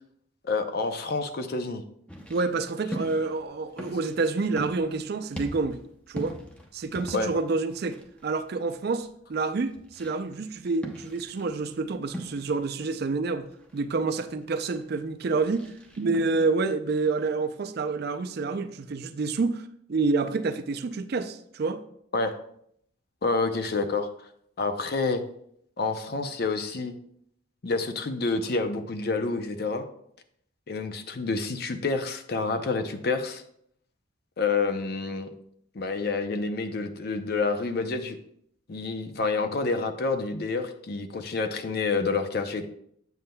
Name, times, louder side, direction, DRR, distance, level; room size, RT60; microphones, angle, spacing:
voice 1, 0.4-1.8 7.1-7.3 22.1-22.3 23.2-24.1 24.6-25.2 25.8-26.9 27.6-29.8 30.7-33.4 34.4-35.3 35.7-38.2 38.7-42.6, left 3 dB, 50° left, 0.5 m, -28 dB
sound 1, 2.1-16.2, equal, 5° left, 0.6 m, -43 dB
voice 2, 2.3-5.8 6.1-6.3 6.7-15.7 16.0-19.6 19.9-21.8, right 3 dB, 50° right, 0.4 m, -28 dB
7.7 x 7.1 x 2.2 m
head